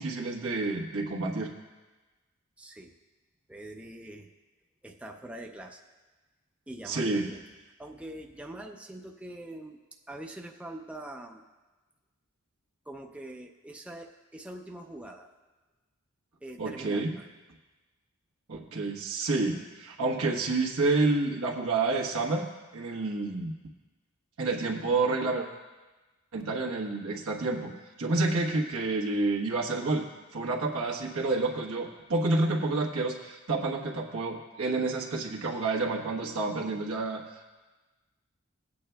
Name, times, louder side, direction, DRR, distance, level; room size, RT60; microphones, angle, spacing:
voice 1, 0.0-1.5 6.9-7.3 16.6-17.1 18.5-22.5 22.7-23.5 24.4-25.5 26.3-27.7 28.0-30.1 30.3-37.2, right 3 dB, 85° right, 0 dB, 1.3 m, -29 dB
voice 2, 2.6-2.9 3.5-4.3 4.8-5.8 6.7-7.4 7.8-9.8 10.1-11.5 12.9-15.3 16.4-17.3, right 1 dB, 5° right, 2 dB, 0.4 m, -43 dB
17.5 x 8.4 x 2.3 m, 1.2 s
head